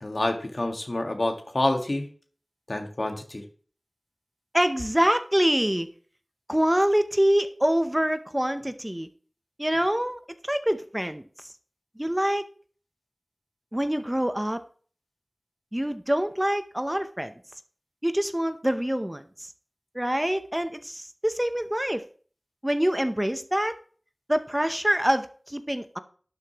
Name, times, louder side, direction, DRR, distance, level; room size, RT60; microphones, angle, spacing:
voice 1, 0.0-2.1 2.7-3.4, left 1 dB, 60° left, 4 dB, 1.7 m, -28 dB
voice 2, 4.5-5.9 6.5-9.1 9.6-11.2 12.0-12.4 13.7-14.6 15.7-17.3 18.0-19.5 19.9-22.0 22.6-23.7 24.3-26.0, equal, 15° right, 9 dB, 0.8 m, -25 dB
11.5 x 8.1 x 3.0 m, 0.43 s
wide cardioid pair, 45°, 0 cm